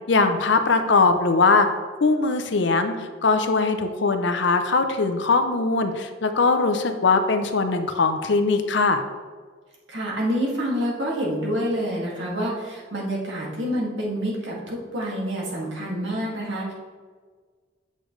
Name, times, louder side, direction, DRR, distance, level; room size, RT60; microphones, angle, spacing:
voice 1, 0.1-1.7 2.0-9.0, left 3 dB, 70° left, 8 dB, 0.7 m, -21 dB
voice 2, 9.9-16.7, equal, 80° right, -4 dB, 2.2 m, -27 dB
8.3 x 6.5 x 3.2 m, 1.5 s
head